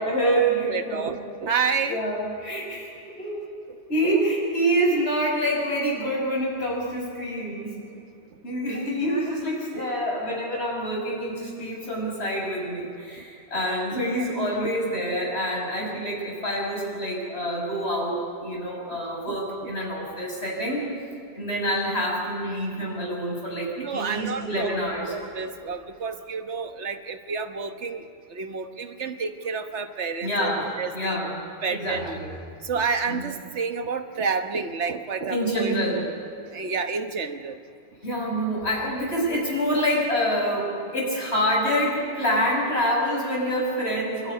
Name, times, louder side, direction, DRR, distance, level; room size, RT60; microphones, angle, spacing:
voice 1, 0.0-1.1 1.9-3.4 3.9-7.7 8.4-20.8 21.3-25.1 30.2-31.4 31.7-32.3 33.1-33.2 35.3-36.0 38.0-44.3, equal, 70° left, -2 dB, 6.3 m, -26 dB
voice 2, 0.6-2.0 3.7-3.8 4.0-4.2 8.7-8.8 9.7-9.9 13.2-13.3 19.3-19.7 23.8-30.5 30.8-31.2 31.6-32.2 32.6-35.8 36.5-37.6 39.7-39.8, right 5 dB, 90° right, 7 dB, 1.5 m, -30 dB
26.5 x 12.5 x 9.7 m, 2.5 s
omnidirectional pair, 1.1 m